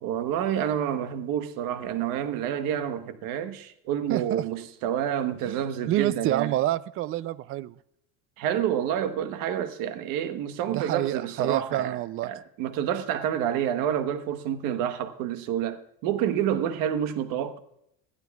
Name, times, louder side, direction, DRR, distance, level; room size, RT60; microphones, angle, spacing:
voice 1, 0.0-6.6 8.4-17.6, right 10 dB, 70° right, 1.2 m, -28 dB
voice 2, 4.1-4.4 5.5-5.6 5.9-7.7 10.7-12.3, right 14 dB, 40° right, 0.4 m, -28 dB
20.0 x 12.5 x 2.4 m
cardioid pair, 135°, 34 cm